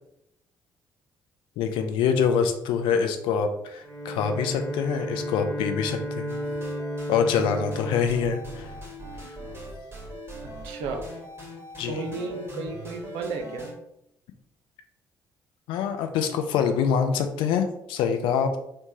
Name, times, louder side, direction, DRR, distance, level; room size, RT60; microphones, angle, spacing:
voice 1, 1.6-6.4 7.1-8.7 11.8-12.0 15.7-18.6, left 7 dB, 65° left, 6 dB, 0.3 m, -25 dB
Bowed string instrument, 3.8-9.4, equal, ahead, 1.3 m, -34 dB
sound 1, 6.3-13.7, equal, 25° right, 1.3 m, -41 dB
voice 2, 10.6-11.0 11.8-13.7, right 3 dB, 65° right, 3 dB, 0.4 m, -33 dB
3.1 x 2.1 x 2.7 m, 0.82 s
figure-of-eight pair, 45°, 9 cm